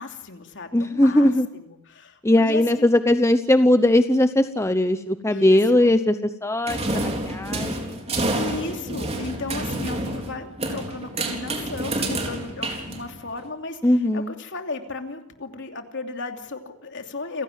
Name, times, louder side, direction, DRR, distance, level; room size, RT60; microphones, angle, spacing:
voice 1, 0.0-2.9 5.3-5.9 8.3-13.8 14.1-17.4, left 3 dB, 55° left, 5 dB, 2.8 m, -35 dB
voice 2, 0.7-1.5 2.2-6.1 6.4-8.0 13.8-14.3, left 1 dB, 10° left, 10 dB, 0.8 m, -19 dB
sound 1, 6.7-13.4, right 2 dB, 30° right, 4.0 m, -28 dB
29.0 x 16.5 x 9.3 m, 0.87 s
head